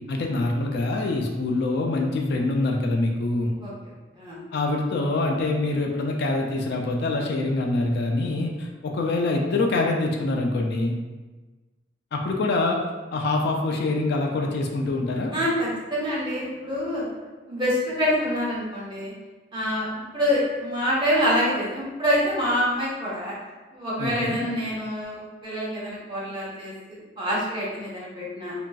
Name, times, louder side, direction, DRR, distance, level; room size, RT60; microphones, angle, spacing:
voice 1, 0.1-3.5 4.5-10.9 12.1-12.8 13.1-15.3 24.0-24.5, left 2 dB, 60° left, 1 dB, 0.3 m, -25 dB
voice 2, 3.6-4.4 15.3-17.1 17.5-19.1 19.5-19.9 20.1-23.4 23.7-28.5, equal, 25° right, -7 dB, 0.9 m, -26 dB
2.9 x 2.6 x 2.3 m, 1.2 s
head